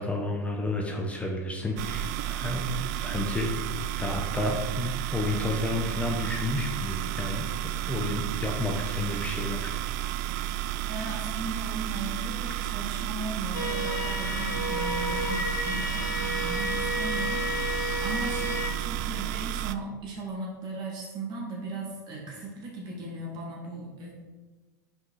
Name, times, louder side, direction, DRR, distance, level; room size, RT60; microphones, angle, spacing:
voice 1, 0.0-3.5 3.9-7.5 7.9-9.7, left 2 dB, 15° left, 1 dB, 1.0 m, -31 dB
sound 1, 1.8-19.7, right 12 dB, 65° right, 0.4 m, -32 dB
voice 2, 10.9-24.1, right 2 dB, 45° right, -2 dB, 2.3 m, -37 dB
sound 2, 13.5-18.7, left 1 dB, 85° left, 0.8 m, -31 dB
5.6 x 5.0 x 4.8 m, 1.2 s
hypercardioid pair, 90°, 10 cm